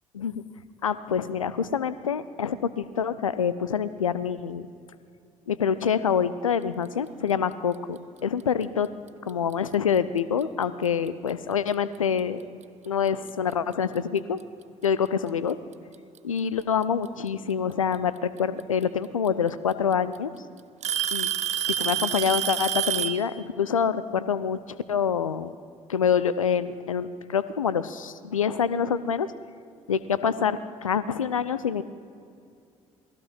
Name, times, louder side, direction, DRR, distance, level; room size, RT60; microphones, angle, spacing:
voice 1, 0.8-4.7 5.5-8.9 9.2-12.4 12.9-14.4 14.8-15.6 16.2-20.3 21.1-21.3 21.7-24.6 24.9-25.5 25.9-29.3 29.9-31.8, left 7 dB, 85° left, 15 dB, 0.7 m, -26 dB
Alarm / Tick-tock, 9.3-9.5 10.4-10.5 11.3-11.4 13.1-13.2 14.4-14.5 15.7-16.2 17.9-18.0 19.3-19.4 19.7-20.2 20.8-23.3, right 9 dB, 45° right, 0.8 m, -27 dB
27.5 x 20.0 x 5.6 m, 2.4 s
figure-of-eight pair, 50°, 17 cm